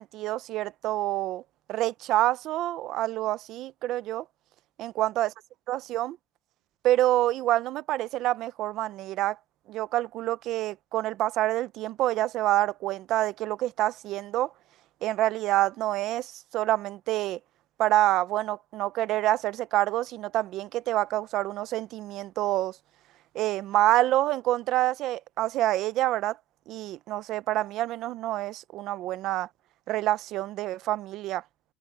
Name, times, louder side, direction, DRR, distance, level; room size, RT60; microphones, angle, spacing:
voice 1, 0.0-1.4 1.7-4.2 4.8-5.3 5.7-6.2 6.8-9.4 9.7-14.5 15.0-17.4 17.8-22.8 23.3-26.4 26.7-29.5 29.9-31.4, right 15 dB, 50° right, 0.6 m, -27 dB
cardioid pair, 160°, 0 cm